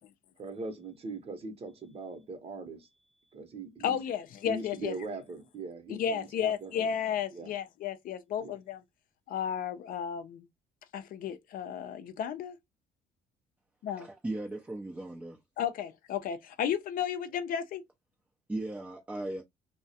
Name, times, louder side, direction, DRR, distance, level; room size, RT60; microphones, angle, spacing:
voice 1, 0.4-2.9 3.3-4.0 4.5-6.9 7.3-7.5 8.4-8.6, right 3 dB, 35° right, 0.8 m, -40 dB
voice 2, 3.8-4.9 6.0-8.8 9.3-10.5 10.9-12.6 13.8-14.1 15.6-17.8, left 8 dB, 55° left, 0.4 m, -33 dB
voice 3, 13.9-15.4 18.5-19.4, right 2 dB, 10° right, 0.4 m, -37 dB
2.3 x 2.1 x 2.7 m
cardioid pair, 110°, 17 cm